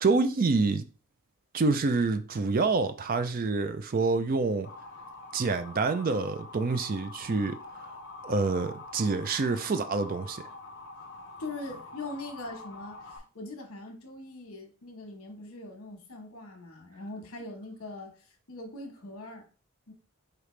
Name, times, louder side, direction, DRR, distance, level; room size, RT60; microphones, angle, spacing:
voice 1, 0.0-0.9 1.5-4.7 5.3-7.6 8.2-10.4, right 3 dB, 40° right, 0.4 m, -27 dB
Motor vehicle (road) / Siren, 4.6-13.2, left 3 dB, 50° left, 0.8 m, -45 dB
voice 2, 11.4-18.1 18.5-19.5 19.9-20.0, left 2 dB, 75° left, 1.2 m, -41 dB
4.9 x 2.9 x 3.2 m
head